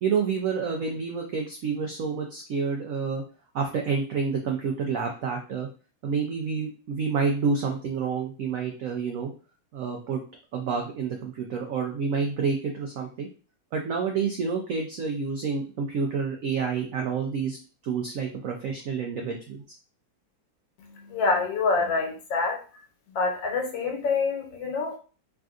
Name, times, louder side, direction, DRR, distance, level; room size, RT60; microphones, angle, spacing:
voice 1, 0.0-3.2 3.5-5.7 6.0-9.3 9.7-10.2 10.5-13.3 13.7-17.6 17.8-19.6, right 5 dB, 90° right, 1 dB, 0.7 m, -28 dB
voice 2, 20.8-22.6 23.1-25.0, left 4 dB, 80° left, 1 dB, 1.5 m, -26 dB
3.5 x 2.5 x 2.4 m, 0.36 s
omnidirectional pair, 2.0 m